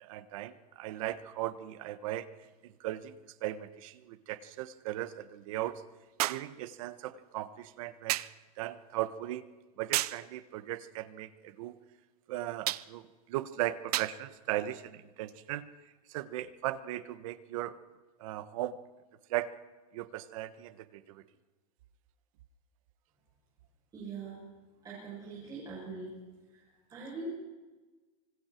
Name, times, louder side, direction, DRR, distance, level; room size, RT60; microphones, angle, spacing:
voice 1, 0.0-2.3 2.6-3.1 3.4-5.8 6.3-8.2 8.6-9.4 9.8-11.8 12.3-15.6 16.1-17.8 18.2-18.8 19.3-19.5 19.9-21.2, right 14 dB, 60° right, 13 dB, 1.3 m, -37 dB
sound 1, 2.4-2.5 6.2-6.5 8.1-8.4 9.9-10.3 12.7-12.9 13.9-14.2 15.3-15.4, right 15 dB, 90° right, 0.8 m, -32 dB
voice 2, 23.9-24.4 24.8-26.2 26.5-27.3, right 3 dB, 20° right, -7 dB, 8.0 m, -42 dB
25.5 x 25.0 x 4.6 m, 1.2 s
supercardioid pair, 165°, 19 cm